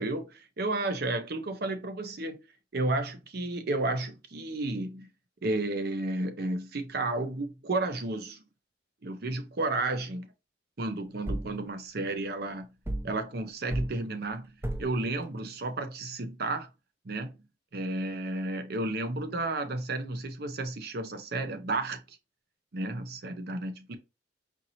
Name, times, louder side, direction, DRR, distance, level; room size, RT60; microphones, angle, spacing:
voice 1, 0.0-2.4 2.7-5.1 5.4-8.4 9.0-10.2 10.8-12.7 13.0-16.7 17.0-17.4 17.7-22.2 22.7-24.0, right 2 dB, 55° right, 0.6 m, -32 dB
sound 1, 11.3-11.6 12.8-13.2 13.7-14.0 14.6-15.0, right 1 dB, 15° right, 0.4 m, -33 dB
4.6 x 2.7 x 2.8 m
head